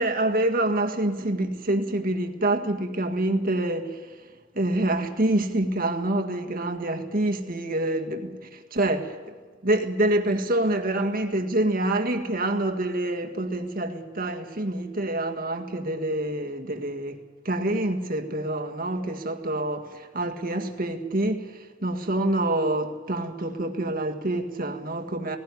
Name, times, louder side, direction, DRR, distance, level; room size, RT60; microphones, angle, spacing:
voice 1, 0.0-4.0 4.6-9.3 9.6-17.2 17.5-25.4, right 1 dB, 45° right, 1.8 m, -26 dB
17.5 x 16.5 x 9.8 m
head